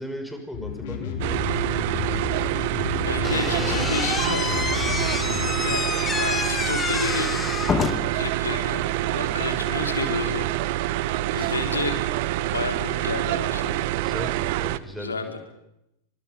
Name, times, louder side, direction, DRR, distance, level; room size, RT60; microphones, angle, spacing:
voice 1, 0.0-1.4 11.3-11.5 13.6-13.7 14.0-15.1, equal, ahead, 4 dB, 6.1 m, -37 dB
sound 1, 0.5-5.5, left 6 dB, 50° left, 4.3 m, -31 dB
sound 2, 1.2-14.8, right 16 dB, 50° right, 1.0 m, -26 dB
voice 2, 3.0-4.5 5.5-5.9 6.2-7.5 8.1-10.4 11.3-12.1 12.5-14.0 15.0-15.4, left 4 dB, 75° left, 5 dB, 4.1 m, -31 dB
Slam / Squeak, 3.2-8.2, left 6 dB, 20° left, 1.9 m, -28 dB
29.0 x 26.0 x 5.4 m, 0.82 s
figure-of-eight pair, 90°, 0 cm